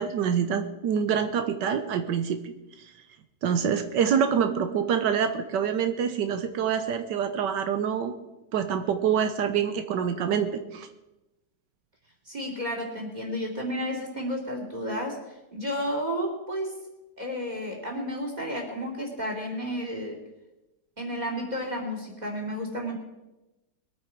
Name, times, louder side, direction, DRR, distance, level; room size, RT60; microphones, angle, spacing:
voice 1, 0.0-2.5 3.4-8.1 8.5-10.9, right 7 dB, 85° right, 8 dB, 1.5 m, -26 dB
voice 2, 12.3-16.8 17.2-20.2 21.0-23.0, equal, 25° right, 1 dB, 3.2 m, -32 dB
21.5 x 9.2 x 4.7 m, 0.98 s
omnidirectional pair, 1.8 m